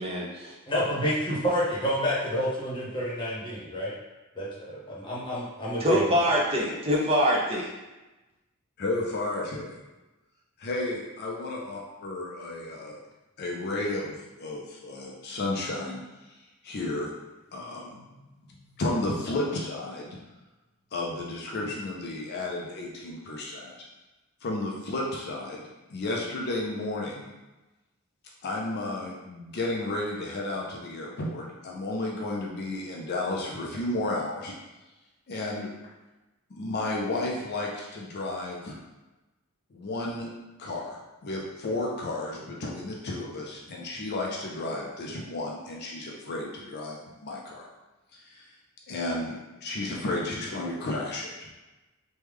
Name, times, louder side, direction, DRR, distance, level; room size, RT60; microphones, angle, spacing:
voice 1, 0.7-3.9 4.3-4.8 5.0-6.1, equal, 20° left, -7 dB, 0.9 m, -29 dB
voice 2, 5.8-7.7, equal, 25° right, -4 dB, 0.6 m, -24 dB
voice 3, 8.8-9.8 10.6-13.0 13.4-16.0 16.3-16.4 16.6-17.1 17.5-18.2 18.5-20.2 20.9-23.7 24.4-25.6 25.9-27.3 28.4-34.5 35.3-35.7 36.5-38.7 39.7-40.3 40.6-47.7 48.1-48.5 48.9-51.5, left 2 dB, 50° left, -2 dB, 0.5 m, -32 dB
3.1 x 2.2 x 3.4 m, 1.1 s
head